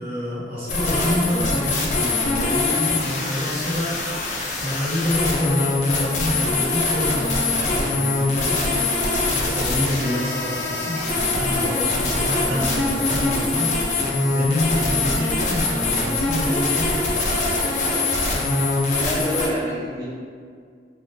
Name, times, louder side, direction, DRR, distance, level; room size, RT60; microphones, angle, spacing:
voice 1, 0.0-4.0 4.6-8.8 9.3-13.7 14.3-17.1, left 1 dB, 55° right, -8 dB, 0.9 m, -27 dB
sound 1, 0.7-19.5, left 2 dB, 40° left, 0.4 m, -23 dB
voice 2, 18.9-20.0, equal, 20° right, -11 dB, 0.5 m, -27 dB
3.2 x 2.5 x 2.5 m, 2.1 s
head